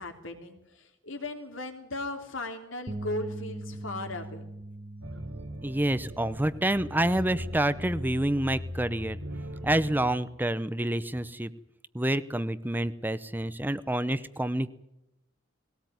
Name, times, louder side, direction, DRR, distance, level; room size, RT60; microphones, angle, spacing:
voice 1, 0.0-4.5, left 2 dB, 80° left, 5 dB, 3.3 m, -37 dB
Bass guitar, 2.9-9.1, right 1 dB, 30° right, 1.2 m, -43 dB
sound 1, 5.0-10.1, equal, 85° right, 3.1 m, -39 dB
voice 2, 5.6-9.2 9.6-11.5 11.9-14.7, right 1 dB, 10° right, 14 dB, 0.8 m, -28 dB
20.0 x 18.0 x 9.4 m, 0.85 s
head